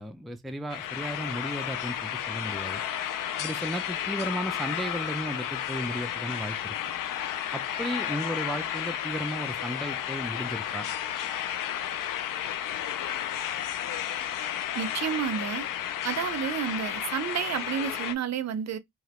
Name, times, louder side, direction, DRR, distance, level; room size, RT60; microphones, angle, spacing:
voice 1, 0.0-2.8 3.4-6.8 7.5-10.9, equal, ahead, 0.3 m, -34 dB
sound 1, 0.7-18.1, left 10 dB, 80° left, 0.5 m, -32 dB
voice 2, 14.7-15.7 16.0-18.8, right 8 dB, 55° right, 0.5 m, -30 dB
3.0 x 2.4 x 2.8 m
cardioid pair, 80°, 32 cm